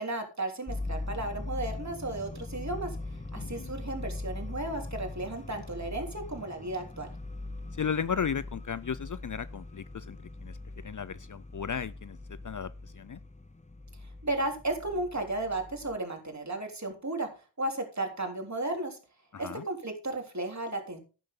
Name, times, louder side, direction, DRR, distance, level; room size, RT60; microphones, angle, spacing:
voice 1, 0.0-3.0 3.3-7.1 14.2-17.3 17.6-19.0 19.4-21.0, right 2 dB, 35° right, 3.5 m, -34 dB
sound 1, 0.7-16.0, left 2 dB, 15° left, 1.0 m, -41 dB
voice 2, 3.4-3.7 7.8-10.6 10.8-13.2 19.3-19.6, left 7 dB, 45° left, 0.5 m, -35 dB
11.5 x 9.1 x 3.8 m
cardioid pair, 50°, 46 cm